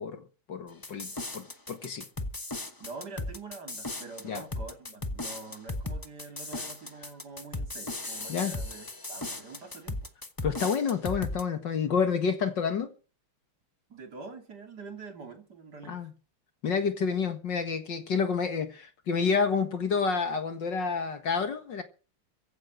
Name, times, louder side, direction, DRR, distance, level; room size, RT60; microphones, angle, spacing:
voice 1, 0.0-2.1 4.2-4.4 8.3-8.6 10.4-12.9 15.9-16.1 16.6-21.8, left 5 dB, 55° left, 2.2 m, -29 dB
sound 1, 0.8-11.4, left 2 dB, 20° left, 0.6 m, -36 dB
voice 2, 2.8-10.1 12.0-12.1 13.9-16.1, right 4 dB, 45° right, 3.3 m, -45 dB
15.5 x 9.4 x 7.5 m
omnidirectional pair, 2.4 m